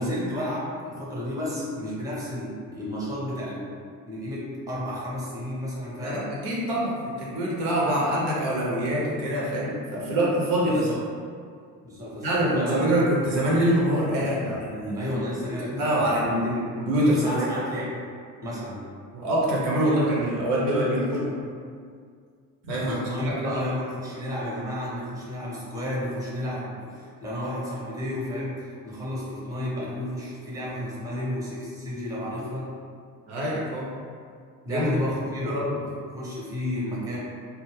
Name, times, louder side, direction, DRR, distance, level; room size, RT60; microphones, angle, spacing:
voice 1, 0.0-3.7 4.1-6.3 10.7-11.0 11.8-13.0 14.9-16.6 17.0-18.0 18.4-18.8 22.8-32.7 34.6-37.2, left 1 dB, 5° right, -6 dB, 0.7 m, -32 dB
voice 2, 6.0-10.9 12.2-15.1 15.7-17.5 19.1-21.3 22.7-23.7 33.3-33.9 34.7-34.9 35.4-35.7, right 1 dB, 60° right, -4 dB, 0.7 m, -25 dB
2.2 x 2.1 x 3.3 m, 2.1 s
figure-of-eight pair, 50°, 49 cm